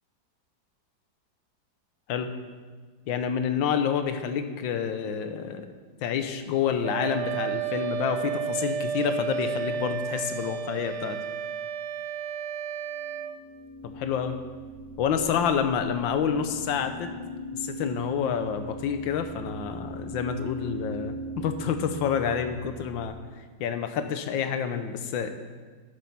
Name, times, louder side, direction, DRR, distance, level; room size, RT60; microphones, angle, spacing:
voice 1, 3.1-5.7 6.0-11.2 13.9-14.4 15.0-17.1 17.5-23.1 23.6-25.3, left 7 dB, 80° left, 8 dB, 1.5 m, -28 dB
Wind instrument woodwind instrument, 6.8-13.4, right 7 dB, 70° right, 1.1 m, -32 dB
sound 1, 13.0-23.1, right 1 dB, 35° right, 3.0 m, -39 dB
10.5 x 7.8 x 5.8 m, 1.5 s
omnidirectional pair, 2.1 m